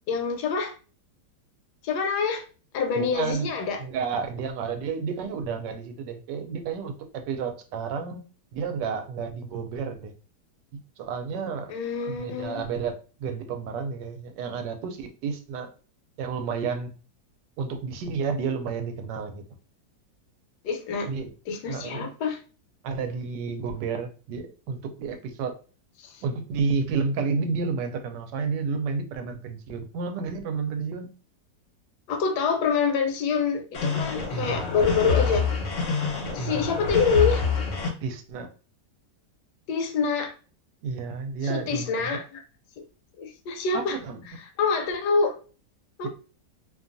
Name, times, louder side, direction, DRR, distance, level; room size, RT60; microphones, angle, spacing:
voice 1, 0.1-0.7 1.8-2.4 2.7-3.8 11.7-12.6 20.6-21.1 21.5-22.4 26.0-26.1 32.1-35.4 36.3-37.4 39.7-40.3 41.4-42.4 43.2-44.0 44.6-45.3 46.0-46.1, left 5 dB, 75° left, 4 dB, 1.1 m, -26 dB
voice 2, 2.9-3.5 3.8-8.2 8.5-10.1 11.0-11.7 12.1-12.9 13.2-15.7 16.2-17.0 17.6-19.4 21.1-21.3 21.7-22.1 22.8-25.5 26.2-31.1 36.7-37.0 38.0-38.5 40.8-42.2 43.7-44.2, right 5 dB, 80° right, 6 dB, 1.2 m, -31 dB
sound 1, 33.7-37.9, left 4 dB, 50° left, 0.8 m, -27 dB
2.8 x 2.3 x 2.5 m, 0.37 s
omnidirectional pair, 1.9 m